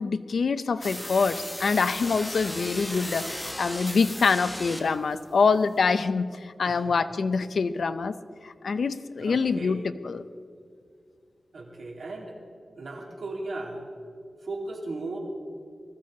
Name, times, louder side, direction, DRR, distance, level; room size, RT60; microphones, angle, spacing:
voice 1, 0.0-8.1 8.4-9.8 10.0-10.2, left 4 dB, 80° left, 12 dB, 0.5 m, -25 dB
sound 1, 0.8-5.1, left 1 dB, 10° left, 1.3 m, -36 dB
voice 2, 6.6-7.0 9.2-9.9 11.5-12.4 12.8-13.9 14.4-15.2, right 2 dB, 85° right, -1 dB, 2.7 m, -36 dB
20.5 x 14.5 x 3.8 m, 2.2 s
wide cardioid pair, 125°, 0 cm